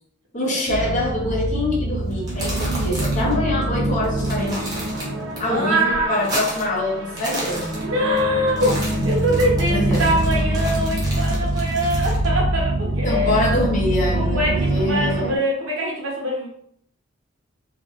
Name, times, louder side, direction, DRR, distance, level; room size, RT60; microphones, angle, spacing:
voice 1, 0.3-4.8 5.4-7.8 9.7-10.9 13.0-15.4, left 1 dB, 40° left, -3 dB, 0.8 m, -25 dB
sound 1, 0.7-15.4, right 1 dB, 70° right, 0.4 m, -24 dB
sound 2, 2.1-3.3 3.6-3.7 4.0-5.4 5.7-6.8 7.1-8.2 8.5-12.2, right 1 dB, 20° right, 0.7 m, -32 dB
voice 2, 5.4-6.4 7.8-13.4 14.1-16.5, equal, 90° right, -3 dB, 0.9 m, -23 dB
2.5 x 2.4 x 2.3 m, 0.67 s
head